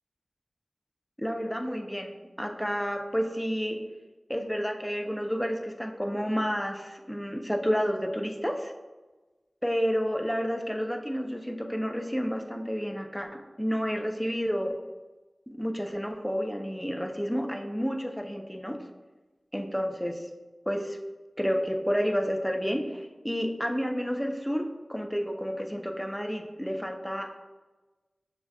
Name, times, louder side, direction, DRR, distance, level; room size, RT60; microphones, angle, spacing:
voice 1, 1.2-3.9 4.3-8.7 9.6-14.8 15.5-18.8 19.5-20.3 20.7-21.0 21.4-27.3, equal, 5° left, 4 dB, 0.5 m, -30 dB
6.6 x 2.8 x 2.2 m, 1.2 s
wide cardioid pair, 45°, 0 cm